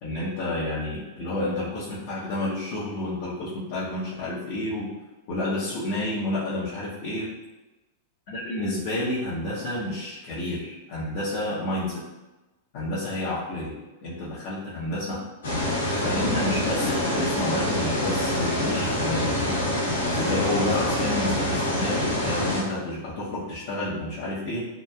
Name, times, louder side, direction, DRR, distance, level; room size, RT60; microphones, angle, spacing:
voice 1, 0.0-4.9 5.3-7.3 8.3-12.0 12.7-15.2 16.0-19.5 20.1-24.7, left 1 dB, 55° left, -8 dB, 0.7 m, -30 dB
sound 1, 15.4-22.6, left 1 dB, 85° left, 1.0 m, -26 dB
2.8 x 2.2 x 2.2 m, 1.1 s
hypercardioid pair, 110°, 0 cm